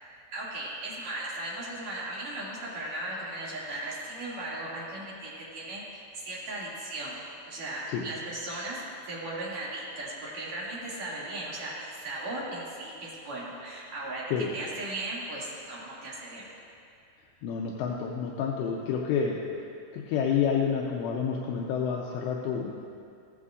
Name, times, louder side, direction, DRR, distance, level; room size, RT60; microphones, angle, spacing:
voice 1, 0.3-7.2 7.5-8.8 9.1-16.5, right 1 dB, 45° right, -8 dB, 2.9 m, -37 dB
voice 2, 17.4-19.4 19.9-22.7, left 7 dB, 80° left, -1 dB, 2.7 m, -29 dB
15.0 x 12.5 x 2.5 m, 2.4 s
omnidirectional pair, 5.3 m